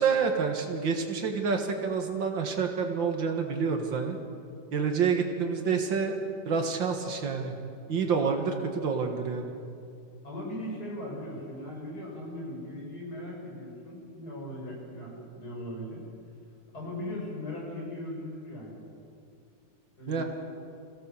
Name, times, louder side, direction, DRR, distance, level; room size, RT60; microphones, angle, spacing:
voice 1, 0.0-4.2 4.7-6.2 6.5-7.5 7.9-9.5 20.1-20.2, right 5 dB, 85° right, 4 dB, 2.4 m, -28 dB
voice 2, 10.2-16.0 16.7-18.8 20.0-20.3, left 1 dB, 55° left, -3 dB, 7.1 m, -38 dB
26.5 x 17.0 x 7.1 m, 2.4 s
omnidirectional pair, 2.0 m